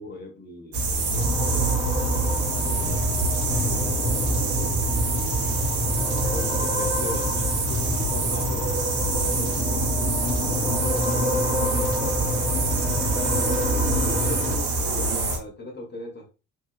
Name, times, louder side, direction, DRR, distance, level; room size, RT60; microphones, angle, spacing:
voice 1, 0.0-3.3 4.2-5.2 6.2-11.9 13.9-16.3, left 1 dB, 25° left, 0 dB, 1.1 m, -40 dB
sound 1, 0.7-15.4, right 3 dB, 80° right, 0.7 m, -26 dB
sound 2, 1.1-14.6, equal, 85° left, 0.7 m, -27 dB
voice 2, 5.3-5.8 6.4-6.9 13.3-14.4, right 2 dB, 5° right, -2 dB, 0.4 m, -44 dB
2.6 x 2.2 x 2.3 m, 0.31 s
figure-of-eight pair, 45°, 44 cm